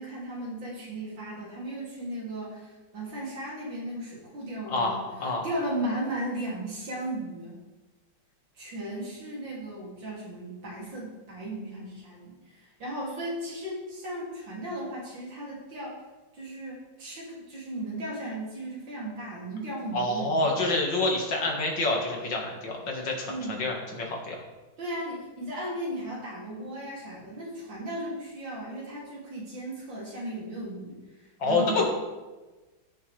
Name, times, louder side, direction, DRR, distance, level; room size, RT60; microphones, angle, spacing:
voice 1, 0.0-5.0 5.4-7.6 8.6-16.0 16.3-20.6 23.2-23.7 24.8-31.0 31.4-31.9, right 1 dB, 75° right, -5 dB, 3.6 m, -36 dB
voice 2, 4.7-5.5 19.9-24.4 31.4-31.9, left 2 dB, 80° left, 0 dB, 2.6 m, -27 dB
14.5 x 6.8 x 3.4 m, 1.2 s
omnidirectional pair, 2.0 m